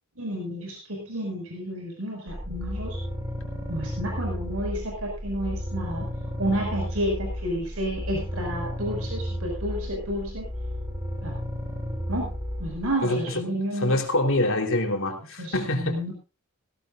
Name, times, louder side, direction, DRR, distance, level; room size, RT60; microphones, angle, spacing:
voice 1, 0.2-3.0 3.7-6.1 6.4-10.5 11.2-11.4 12.1-12.3 12.6-14.0 15.4-16.1, equal, 70° right, 1 dB, 5.8 m, -31 dB
sound 1, 2.3-12.9, equal, 15° right, 2.8 m, -33 dB
voice 2, 13.8-16.0, left 1 dB, 60° left, 4 dB, 3.7 m, -25 dB
18.5 x 17.0 x 2.6 m, 0.30 s
head